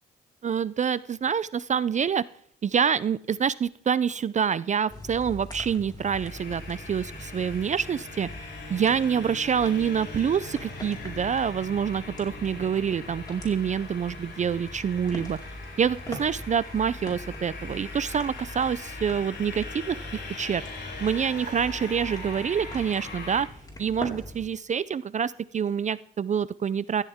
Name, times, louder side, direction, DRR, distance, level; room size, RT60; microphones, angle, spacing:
voice 1, 0.4-2.2 2.6-8.3 8.7-15.4 15.8-20.6 21.0-23.5 23.8-27.0, right 7 dB, 35° right, 17 dB, 0.5 m, -26 dB
sound 1, 4.9-24.5, left 1 dB, 20° left, 4.5 m, -42 dB
sound 2, 6.2-23.4, left 3 dB, 60° left, 5.6 m, -41 dB
16.5 x 14.5 x 3.6 m, 0.63 s
cardioid pair, 90°, 20 cm